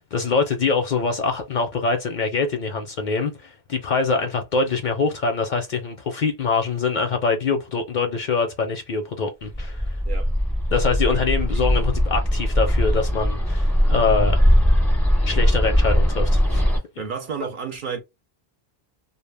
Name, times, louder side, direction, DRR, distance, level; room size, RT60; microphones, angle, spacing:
voice 1, 0.1-10.0 10.7-14.4 15.2-16.6, left 4 dB, 60° left, 0.6 m, -24 dB
Bird, 9.5-16.8, equal, ahead, 0.5 m, -20 dB
voice 2, 17.0-18.0, right 6 dB, 55° right, 0.7 m, -31 dB
2.1 x 2.1 x 3.2 m
omnidirectional pair, 1.1 m